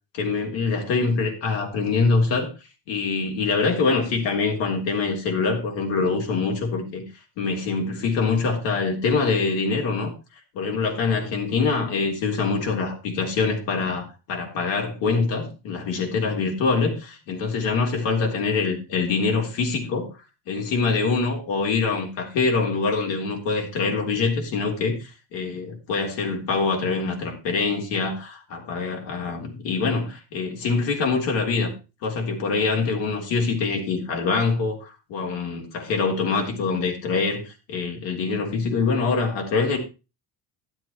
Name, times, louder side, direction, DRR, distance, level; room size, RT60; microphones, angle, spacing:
voice 1, 0.2-2.5 2.9-7.0 7.4-10.1 10.5-20.1 20.5-31.7 32.0-39.8, left 4 dB, 85° left, 3.6 m, -24 dB
11.5 x 7.8 x 4.4 m
cardioid pair, 140°, 43 cm